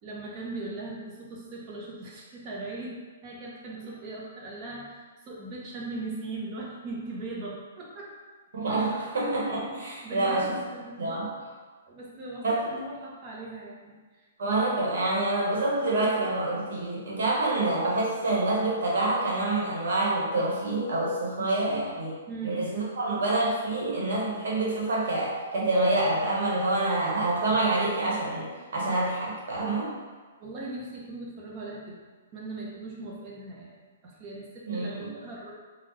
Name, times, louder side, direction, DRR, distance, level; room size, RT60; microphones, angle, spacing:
voice 1, 0.0-3.0 3.2-8.1 8.8-8.9 10.0-11.1 11.9-14.2 22.3-22.6 30.4-32.0 32.3-33.8 34.0-35.5, right 2 dB, 35° right, -4 dB, 0.9 m, -39 dB
voice 2, 8.5-10.6 11.0-11.3 12.4-12.6 14.4-22.1 22.4-29.9 34.7-35.1, right 2 dB, 70° right, -5 dB, 1.2 m, -27 dB
3.4 x 2.3 x 3.2 m, 1.4 s
hypercardioid pair, 130°, 0 cm